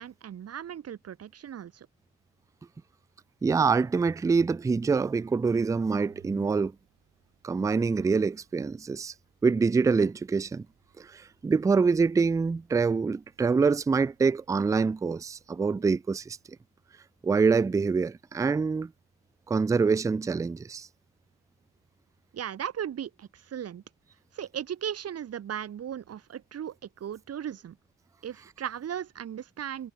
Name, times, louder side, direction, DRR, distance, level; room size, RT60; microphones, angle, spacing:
voice 1, 0.0-1.9 22.3-23.8 24.3-27.8 28.2-29.9, right 9 dB, 55° right, 1.6 m, -37 dB
voice 2, 3.4-6.7 7.4-9.1 9.4-10.7 11.0-16.4 17.2-18.9 19.5-20.9, right 4 dB, 10° right, 0.3 m, -25 dB
sound 1, 4.4-16.6, right 14 dB, 85° right, 7.1 m, -61 dB
cardioid pair, 90°, 30 cm